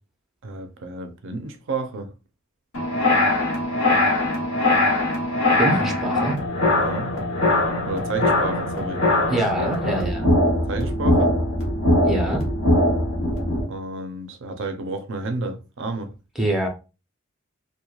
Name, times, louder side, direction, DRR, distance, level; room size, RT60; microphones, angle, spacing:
voice 1, 0.4-2.1 5.7-5.8 6.8-7.1 7.9-9.0 10.7-11.4 13.7-16.1, right 3 dB, 60° right, 0.5 m, -31 dB
sound 1, 2.7-13.6, left 1 dB, 65° left, 1.0 m, -21 dB
voice 2, 5.6-6.4 9.3-10.3 12.0-12.4 16.4-16.7, right 2 dB, ahead, 0.5 m, -24 dB
2.9 x 2.2 x 2.3 m
head